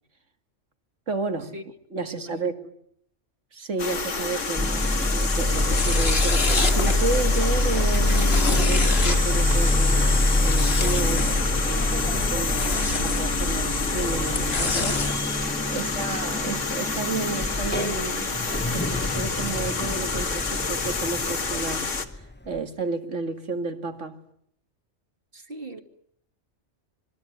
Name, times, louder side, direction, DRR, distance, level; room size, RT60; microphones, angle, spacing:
voice 1, 1.1-1.6 1.9-2.6 3.5-15.0 15.7-24.2, right 3 dB, 75° right, 2.5 m, -32 dB
voice 2, 2.0-2.7 15.7-16.1 25.3-25.8, right 1 dB, 50° right, 2.9 m, -41 dB
sound 1, 3.8-22.0, left 4 dB, 85° left, 2.2 m, -28 dB
sound 2, 4.6-22.6, left 1 dB, 10° left, 1.0 m, -26 dB
sound 3, 5.4-15.2, left 3 dB, 55° left, 2.2 m, -29 dB
25.5 x 21.5 x 9.5 m
omnidirectional pair, 1.3 m